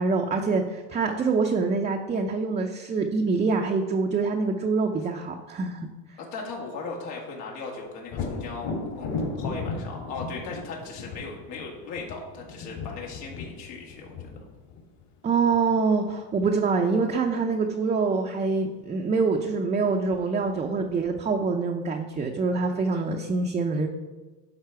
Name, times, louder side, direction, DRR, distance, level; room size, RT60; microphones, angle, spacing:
voice 1, 0.0-5.8 15.2-23.9, right 4 dB, 15° right, 1 dB, 0.4 m, -25 dB
voice 2, 6.2-8.7 9.0-9.1 9.4-14.3, left 4 dB, 85° left, -1 dB, 2.3 m, -37 dB
Thunder, 8.1-15.8 19.4-19.5 20.0-20.9, left 3 dB, 60° left, 2.7 m, -36 dB
11.5 x 4.0 x 4.6 m, 1.2 s
supercardioid pair, 115°, 47 cm